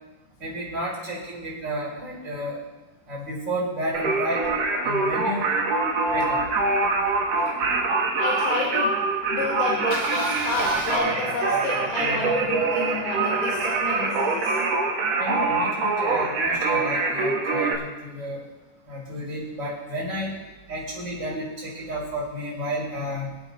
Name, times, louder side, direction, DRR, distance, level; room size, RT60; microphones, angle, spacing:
voice 1, 0.4-2.6 3.1-4.5 4.8-5.5 6.1-6.4 15.2-18.4 18.9-20.4 20.7-23.4, equal, 25° right, -6 dB, 5.5 m, -31 dB
Singing, 3.9-17.7, right 3 dB, 70° right, 1.6 m, -24 dB
Engine starting, 4.4-8.6 9.1-9.2 9.4-9.5 9.8-11.0, left 1 dB, 40° left, 3.5 m, -39 dB
voice 2, 8.2-8.9 9.3-14.6, left 4 dB, 85° left, -4 dB, 4.3 m, -30 dB
24.5 x 8.5 x 3.1 m, 1.1 s
omnidirectional pair, 5.0 m